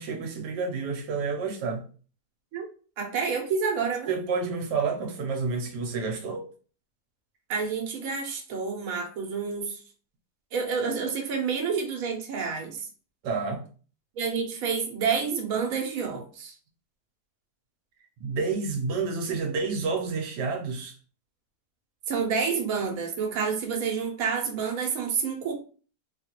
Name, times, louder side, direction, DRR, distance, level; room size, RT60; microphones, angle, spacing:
voice 1, 0.0-1.9 4.1-6.5 13.2-13.6 18.2-20.9, right 4 dB, 85° right, 1.3 m, -29 dB
voice 2, 3.0-4.1 7.5-9.8 10.5-12.9 14.2-16.5 22.1-25.5, right 5 dB, 65° right, 1.2 m, -29 dB
3.6 x 2.4 x 2.8 m
omnidirectional pair, 1.8 m